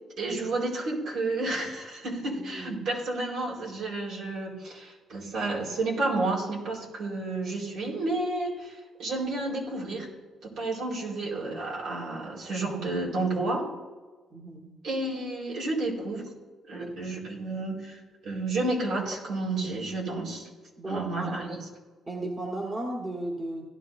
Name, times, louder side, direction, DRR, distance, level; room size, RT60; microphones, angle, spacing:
voice 1, 0.2-10.1 10.4-13.7 14.8-16.2 16.7-20.5 20.8-21.6, right 2 dB, 75° right, -3 dB, 4.5 m, -31 dB
voice 2, 2.5-2.9 14.3-14.7 16.7-17.0 20.8-21.3 22.1-23.6, right 1 dB, 30° right, -1 dB, 1.8 m, -35 dB
17.0 x 11.5 x 2.7 m, 1.3 s
cardioid pair, 90°, 0 cm